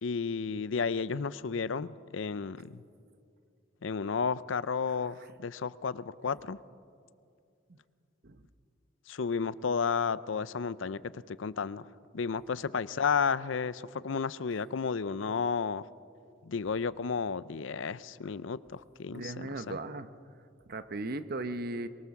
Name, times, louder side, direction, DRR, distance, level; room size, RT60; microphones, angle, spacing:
voice 1, 0.0-2.8 3.8-6.6 9.1-11.9 12.1-15.9 16.5-19.8, left 5 dB, 70° left, 17 dB, 0.6 m, -32 dB
voice 2, 4.9-5.3 6.2-6.3 7.7-7.8 8.2-8.4 19.1-20.1 20.7-21.9, right 2 dB, 50° right, 11 dB, 1.0 m, -38 dB
24.0 x 22.5 x 7.1 m, 2.4 s
head